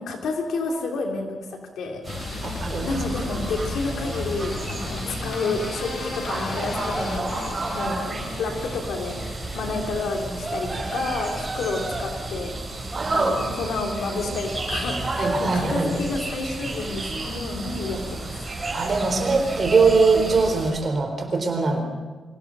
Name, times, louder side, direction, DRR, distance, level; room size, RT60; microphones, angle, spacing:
voice 1, 0.0-1.4 1.7-2.0 2.8-9.3 9.5-12.5 13.1-18.4 21.7-21.8, left 3 dB, 85° left, 2 dB, 3.4 m, -30 dB
sound 1, 2.0-20.7, right 2 dB, 25° right, 5.7 m, -30 dB
sound 2, 2.1-14.2 14.5-15.1 15.4-16.0 16.3-16.5 16.9-17.0 17.2-17.3, left 5 dB, 65° left, 1.6 m, -37 dB
voice 2, 2.4-3.0 7.8-7.9 12.9-13.7 15.2-15.9 18.7-21.8, right 4 dB, 45° right, 4 dB, 3.8 m, -22 dB
25.0 x 16.5 x 6.3 m, 1.4 s
cardioid pair, 110°, 0 cm